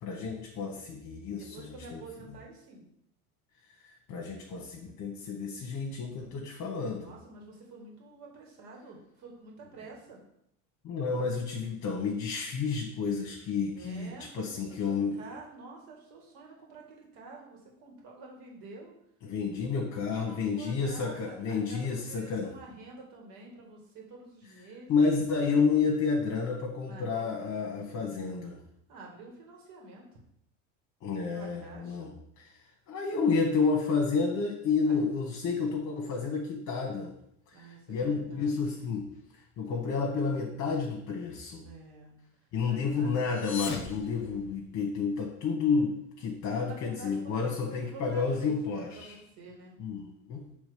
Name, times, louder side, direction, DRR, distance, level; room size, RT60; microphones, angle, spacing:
voice 1, 0.0-2.0 3.8-7.1 10.8-15.3 19.2-22.5 24.9-28.6 31.0-32.5 32.9-37.1 37.5-39.1 39.6-41.6 42.5-49.1 49.8-50.5, left 5 dB, 45° left, 0 dB, 1.3 m, -30 dB
voice 2, 1.3-2.8 6.9-10.2 13.7-18.9 20.1-25.1 26.8-28.3 28.9-30.1 31.3-32.1 34.8-35.0 37.5-38.9 41.6-42.2 42.7-43.2 46.5-49.7, right 3 dB, 65° right, -1 dB, 2.3 m, -49 dB
sound 1, 43.2-45.1, left 6 dB, 30° left, 1.1 m, -40 dB
6.3 x 3.5 x 5.2 m, 0.75 s
supercardioid pair, 115°, 39 cm